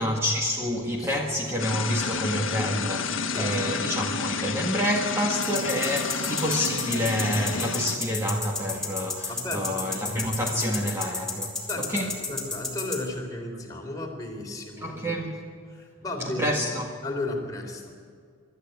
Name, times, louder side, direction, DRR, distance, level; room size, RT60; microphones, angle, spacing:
voice 1, 0.0-12.1 14.8-15.3 16.2-16.9, equal, 15° right, -1 dB, 1.8 m, -28 dB
voice 2, 1.0-1.3 3.3-4.0 9.3-10.3 11.7-15.3 15.7-16.5 17.0-17.9, left 2 dB, 20° left, 1 dB, 3.4 m, -35 dB
sound 1, 1.6-8.0, left 5 dB, 80° left, 1.4 m, -30 dB
sound 2, 5.4-13.0, left 4 dB, 5° left, 3.7 m, -31 dB
25.0 x 13.0 x 9.4 m, 2.1 s
head